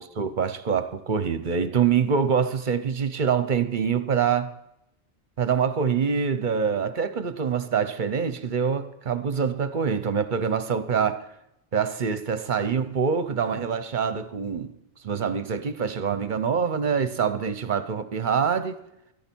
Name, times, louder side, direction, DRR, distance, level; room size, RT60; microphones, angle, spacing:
voice 1, 0.0-4.5 5.4-11.2 11.7-14.7 15.0-18.8, right 6 dB, 50° right, 0.8 m, -25 dB
17.5 x 12.0 x 4.5 m
omnidirectional pair, 1.2 m